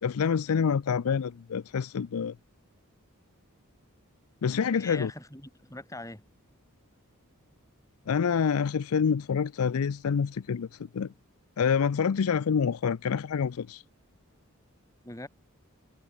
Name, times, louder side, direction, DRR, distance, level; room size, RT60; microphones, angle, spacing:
voice 1, 0.0-2.3 4.4-5.1 8.1-10.7 10.9-11.1 11.6-13.8, left 6 dB, 75° left, 0.4 m, -27 dB
voice 2, 4.8-6.2 15.0-15.3, left 2 dB, 15° left, 4.6 m, -42 dB
head